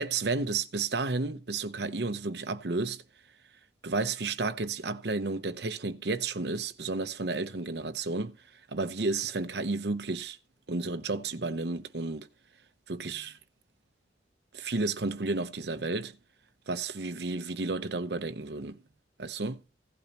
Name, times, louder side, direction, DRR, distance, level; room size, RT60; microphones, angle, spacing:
voice 1, 0.0-3.0 3.8-8.4 8.7-10.4 10.7-12.3 12.9-13.4 14.5-16.2 16.7-18.8 19.2-19.6, right 3 dB, 70° right, 0.8 m, -32 dB
16.0 x 8.5 x 3.0 m
head